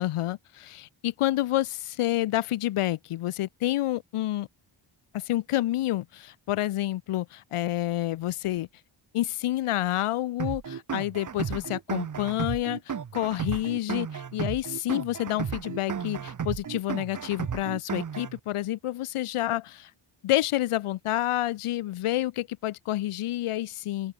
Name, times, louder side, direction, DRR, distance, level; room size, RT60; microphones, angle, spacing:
voice 1, 0.0-4.5 5.1-8.7 9.1-19.9 20.2-24.1, left 14 dB, 90° left, 0.6 m, -29 dB
sound 1, 10.4-18.4, right 7 dB, 40° right, 0.8 m, -34 dB
open air
wide cardioid pair, 160°, 49 cm